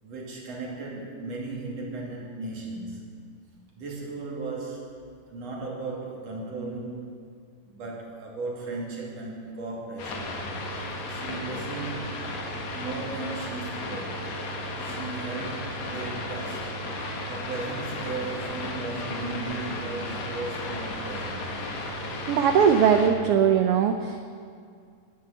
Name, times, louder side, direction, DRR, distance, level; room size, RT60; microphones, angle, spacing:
voice 1, 0.0-3.2 3.7-7.1 7.7-10.3 11.1-12.3 12.7-14.3 14.8-16.8 17.3-21.5, right 3 dB, 60° right, -3 dB, 3.5 m, -36 dB
sound 1, 10.0-23.1, left 1 dB, 70° left, 2.8 m, -34 dB
voice 2, 22.3-24.3, right 7 dB, 85° right, 6 dB, 1.2 m, -20 dB
12.0 x 9.5 x 8.3 m, 2.2 s
omnidirectional pair, 3.4 m